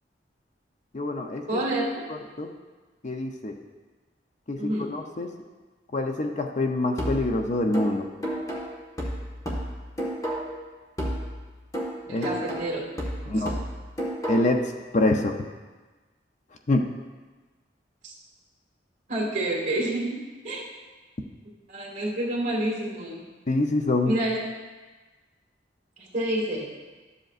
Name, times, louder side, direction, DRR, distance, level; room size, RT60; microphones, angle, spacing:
voice 1, 0.9-1.6 2.1-2.5 3.0-3.5 4.5-5.3 5.9-8.1 12.1-12.3 13.3-13.5 14.3-14.6 14.9-15.4 16.7-16.9 23.5-24.1, left 2 dB, 40° left, 4 dB, 0.6 m, -25 dB
voice 2, 1.5-1.9 4.6-4.9 12.1-13.5 18.0-18.1 19.1-20.6 21.7-23.3 24.1-24.4 26.0-26.7, right 1 dB, 45° right, -3 dB, 2.1 m, -29 dB
sound 1, 7.0-10.7 11.0-14.7, equal, 20° left, 1.4 m, -32 dB
12.5 x 7.8 x 2.5 m, 1.3 s
head